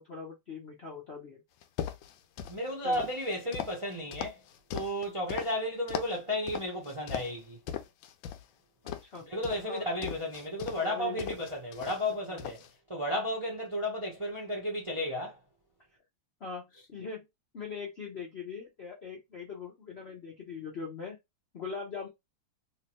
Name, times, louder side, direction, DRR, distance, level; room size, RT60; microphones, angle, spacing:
voice 1, 0.0-1.4 2.8-3.1 8.8-9.3 9.6-9.9 10.8-11.5 12.1-12.4 16.4-17.2 17.5-21.2 21.5-22.1, left 5 dB, 60° left, 0.7 m, -41 dB
sound 1, 1.6-2.6 2.9-5.5 5.9-6.2 6.5-7.4 7.7-8.4 8.9-10.9 11.2-12.1 12.4-12.7, left 10 dB, 80° left, 1.3 m, -39 dB
voice 2, 2.5-4.4 4.7-7.6 9.3-12.6 12.9-15.4, left 1 dB, 35° right, 0.5 m, -33 dB
3.2 x 3.0 x 3.0 m
omnidirectional pair, 2.2 m